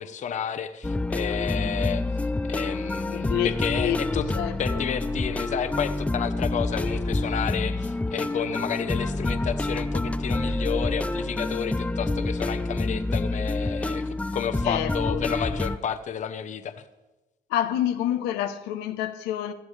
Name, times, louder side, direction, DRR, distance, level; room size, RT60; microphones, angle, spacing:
voice 1, 0.0-2.0 2.5-4.2 4.6-16.8, left 8 dB, 45° left, 0.9 m, -31 dB
sound 1, 0.8-15.8, left 2 dB, 10° left, 0.4 m, -28 dB
voice 2, 3.1-4.8 14.6-15.3 17.5-19.5, left 11 dB, 90° left, 0.9 m, -28 dB
18.0 x 12.5 x 3.3 m
cardioid pair, 110°, 17 cm